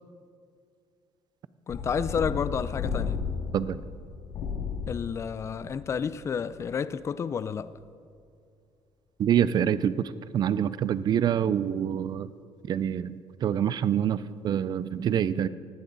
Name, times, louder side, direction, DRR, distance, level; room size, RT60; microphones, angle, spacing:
sound 1, 1.7-6.5, left 5 dB, 60° left, 2.3 m, -34 dB
voice 1, 1.7-3.3 4.9-7.7, left 6 dB, 25° left, 0.4 m, -30 dB
voice 2, 9.2-12.3 12.7-13.1 13.4-15.5, right 9 dB, 40° right, 0.4 m, -26 dB
18.5 x 15.5 x 4.0 m
cardioid pair, 180°, 11 cm